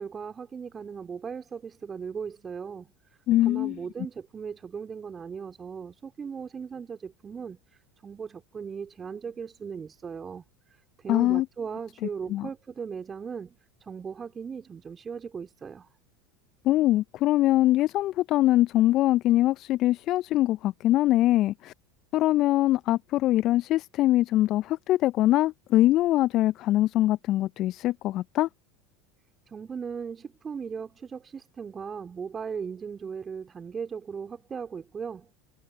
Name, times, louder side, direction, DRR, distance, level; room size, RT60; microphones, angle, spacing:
voice 1, 0.0-15.9 29.5-35.3, right 6 dB, 25° right, 4.0 m, -38 dB
voice 2, 3.3-3.8 11.1-11.4 12.3-12.5 16.6-21.7 22.1-28.5, left 15 dB, 45° left, 0.6 m, -23 dB
figure-of-eight pair, 80°, 0 cm